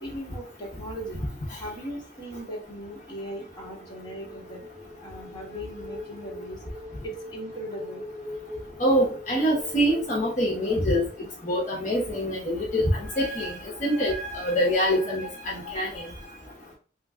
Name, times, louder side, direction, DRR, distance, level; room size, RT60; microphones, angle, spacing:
voice 1, 0.0-1.3 1.6-4.7 5.0-6.6 7.0-8.0, equal, 25° left, -3 dB, 1.2 m, -38 dB
sound 1, 2.9-11.8, left 1 dB, 40° right, 0.8 m, -42 dB
voice 2, 8.8-11.0 11.4-16.1, equal, 45° left, -5 dB, 1.0 m, -25 dB
3.1 x 2.4 x 3.6 m, 0.39 s
head